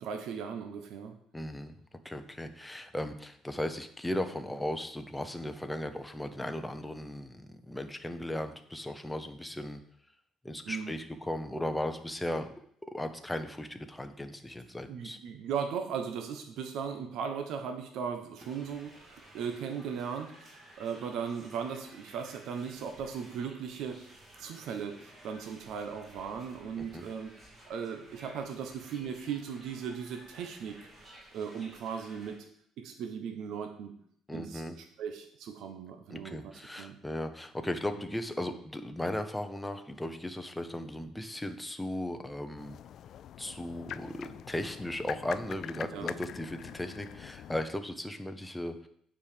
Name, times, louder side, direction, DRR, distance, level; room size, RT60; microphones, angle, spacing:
voice 1, 0.0-1.1 10.6-10.9 14.9-27.3 27.7-30.8 31.3-32.4 32.8-33.9 34.3-36.5 36.8-37.0 45.9-46.1, right 7 dB, 65° right, 5 dB, 1.1 m, -37 dB
voice 2, 1.3-1.8 2.0-9.8 10.4-12.5 12.8-15.2 26.8-27.0 34.3-34.7 36.1-42.8 43.4-48.9, left 1 dB, 5° left, 7 dB, 0.8 m, -37 dB
sound 1, 18.4-32.3, right 1 dB, 25° right, 2.9 m, -55 dB
sound 2, 42.6-47.7, left 10 dB, 55° left, 0.3 m, -44 dB
8.7 x 5.0 x 6.8 m, 0.66 s
cardioid pair, 140°, 0 cm